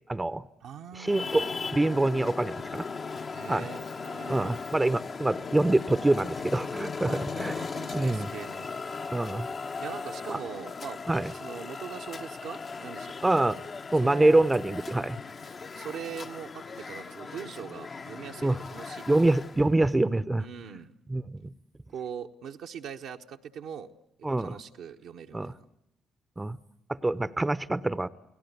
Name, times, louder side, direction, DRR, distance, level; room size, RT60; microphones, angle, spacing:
voice 1, 0.1-0.4 0.9-1.4 1.7-2.9 3.5-3.7 4.3-8.3 9.1-9.5 10.3-10.4 11.1-11.3 13.2-13.6 13.9-15.2 18.4-18.6 19.1-20.5 21.1-21.4 24.2-24.6 25.3-25.5 26.4-26.6 26.9-28.1, right 2 dB, 20° right, 16 dB, 0.9 m, -25 dB
voice 2, 0.6-1.3 3.3-4.5 7.0-8.7 9.8-11.0 11.3-13.1 14.0-14.4 15.8-19.2 20.4-20.9 21.9-23.9 24.2-25.5, right 7 dB, 65° right, 3 dB, 1.2 m, -41 dB
Traffic noise roadway noise, 1.0-19.7, left 4 dB, 45° left, 1.1 m, -38 dB
30.0 x 18.0 x 8.1 m, 0.81 s
figure-of-eight pair, 40°, 0 cm